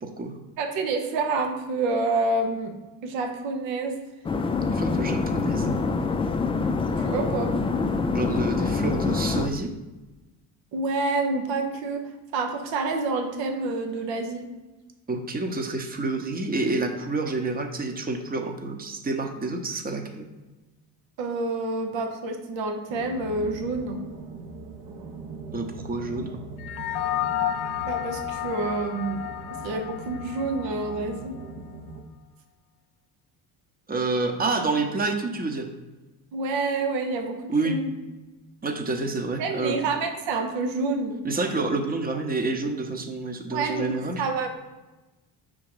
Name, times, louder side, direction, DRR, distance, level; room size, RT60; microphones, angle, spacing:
voice 1, 0.0-0.4 4.7-5.8 8.1-9.7 15.1-20.3 25.5-26.3 33.9-35.7 37.5-37.8 38.6-39.8 41.2-44.2, right 3 dB, 20° right, 4 dB, 0.9 m, -28 dB
voice 2, 0.6-2.7 3.0-3.9 7.0-7.5 10.7-14.5 21.2-24.0 27.8-29.2 29.6-31.4 36.3-37.9 39.4-41.2 43.5-44.5, right 3 dB, 75° right, 5 dB, 1.0 m, -28 dB
sound 1, 4.2-9.5, left 4 dB, 15° left, 0.3 m, -25 dB
sound 2, 22.9-32.0, right 3 dB, 50° right, 0.9 m, -41 dB
sound 3, 26.6-31.3, left 12 dB, 55° left, 0.6 m, -31 dB
5.0 x 3.8 x 4.9 m, 1.1 s
supercardioid pair, 70°, 45 cm